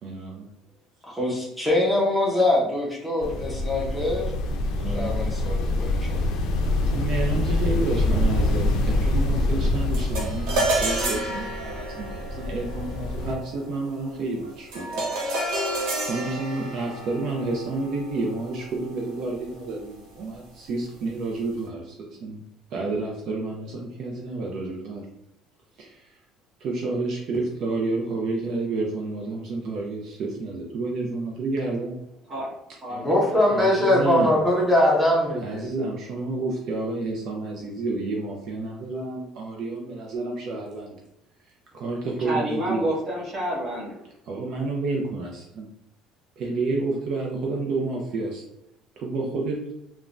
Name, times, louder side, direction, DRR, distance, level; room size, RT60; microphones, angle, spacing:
voice 1, 0.0-0.5 4.8-5.3 6.0-6.3 6.8-15.1 16.0-22.4 22.7-25.1 25.8-26.2 26.6-32.0 33.5-34.4 35.4-41.0 41.4-42.8 44.3-45.7 46.4-48.4 49.0-49.8, right 3 dB, 55° right, -1 dB, 0.4 m, -30 dB
voice 2, 1.1-4.3 4.9-6.2 32.9-35.6, left 1 dB, ahead, -5 dB, 0.7 m, -22 dB
sound 1, 3.2-13.3, left 2 dB, 65° left, 0.4 m, -25 dB
sound 2, 9.9-19.4, right 1 dB, 85° right, 1.0 m, -30 dB
voice 3, 32.8-33.4 42.2-44.0, right 1 dB, 35° right, -5 dB, 1.2 m, -29 dB
3.2 x 2.1 x 2.5 m, 0.83 s
cardioid pair, 140°, 0 cm